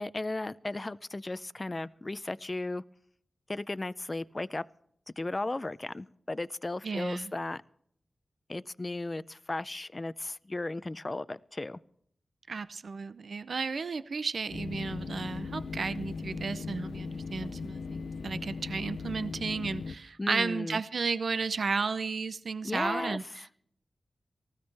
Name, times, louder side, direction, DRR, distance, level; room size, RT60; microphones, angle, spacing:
voice 1, 0.0-2.8 3.5-4.6 5.2-7.6 8.5-11.8 20.2-20.8 22.6-23.5, left 2 dB, 30° left, 16 dB, 0.5 m, -35 dB
voice 2, 6.8-7.3 12.5-23.2, right 4 dB, 70° right, 14 dB, 0.6 m, -33 dB
sound 1, 14.5-19.9, left 4 dB, 90° left, 0.7 m, -38 dB
19.0 x 15.5 x 3.4 m, 0.67 s
wide cardioid pair, 75°, 0 cm